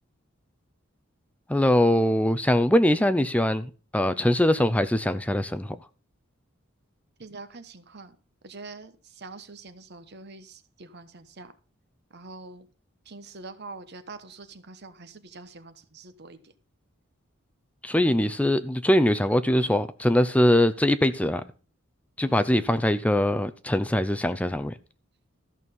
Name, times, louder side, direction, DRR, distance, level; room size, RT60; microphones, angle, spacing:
voice 1, 1.5-5.8 17.8-21.4 22.2-24.7, left 1 dB, 5° left, 0.5 m, -22 dB
voice 2, 7.2-8.2 8.4-11.5 12.1-12.7 13.0-16.5 22.3-22.5, right 3 dB, 55° right, 1.1 m, -44 dB
14.0 x 6.3 x 5.3 m
head